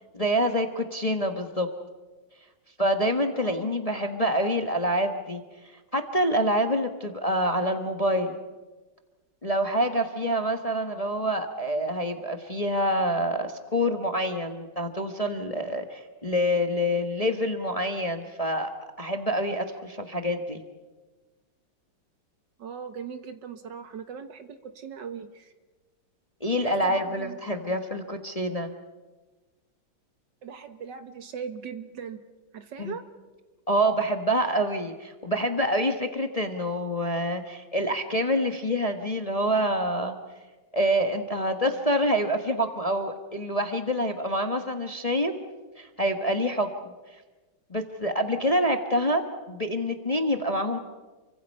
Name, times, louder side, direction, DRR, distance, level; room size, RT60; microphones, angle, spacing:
voice 1, 0.1-1.7 2.8-8.4 9.4-18.7 19.0-20.6 26.4-28.7 32.8-32.9 33.7-40.2 40.7-45.3 45.8-46.7 47.7-50.8, equal, 20° left, 6 dB, 1.1 m, -26 dB
voice 2, 3.4-3.8 22.6-25.5 26.5-27.8 30.4-32.2 32.5-33.0, right 6 dB, 60° right, 9 dB, 1.9 m, -39 dB
29.0 x 24.5 x 5.5 m, 1.3 s
omnidirectional pair, 2.2 m